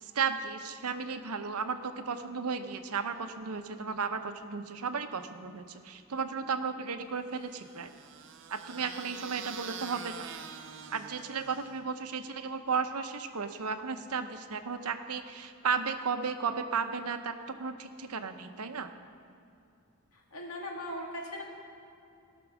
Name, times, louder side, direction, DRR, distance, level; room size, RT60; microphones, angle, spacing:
voice 1, 0.0-7.9 8.5-10.3 10.9-18.9, right 5 dB, 90° right, 8 dB, 0.8 m, -34 dB
sound 1, 7.4-11.9, right 6 dB, 55° right, 0.6 m, -45 dB
voice 2, 20.1-21.4, left 1 dB, 80° left, -1 dB, 2.3 m, -39 dB
17.0 x 6.1 x 6.2 m, 2.6 s
head